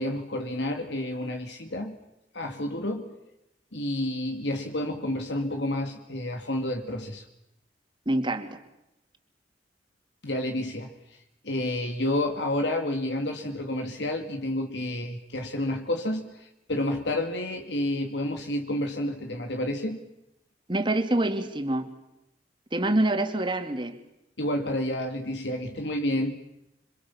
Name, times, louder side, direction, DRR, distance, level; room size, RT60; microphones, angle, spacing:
voice 1, 0.0-2.0 2.3-3.1 3.7-7.3 10.2-20.0 24.4-26.4, left 1 dB, 80° left, 5 dB, 2.5 m, -30 dB
voice 2, 8.1-8.6 20.7-21.9 22.7-24.0, right 1 dB, 25° right, 7 dB, 2.8 m, -26 dB
27.0 x 26.5 x 7.3 m, 0.88 s
head